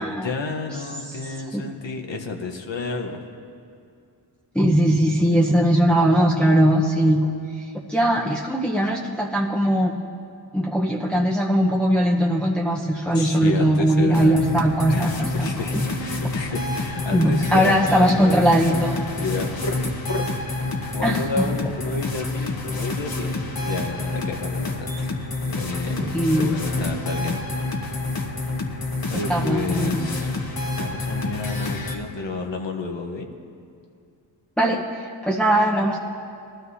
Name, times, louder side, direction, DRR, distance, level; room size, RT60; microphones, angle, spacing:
voice 1, 0.0-3.2 13.1-14.4 14.9-18.4 19.2-19.8 20.1-23.3 23.6-25.2 25.5-26.0 26.4-27.4 28.1-28.5 29.1-30.3 30.8-33.3, left 3 dB, 70° left, 3 dB, 1.2 m, -31 dB
voice 2, 4.5-7.3 7.7-10.0 10.5-15.8 17.1-19.0 21.0-21.4 26.0-26.5 29.3-30.1 34.6-36.0, equal, ahead, -4 dB, 1.0 m, -20 dB
sound 1, 14.1-32.0, left 2 dB, 50° left, 1.4 m, -28 dB
19.0 x 13.0 x 2.8 m, 2.4 s
cardioid pair, 55°, 46 cm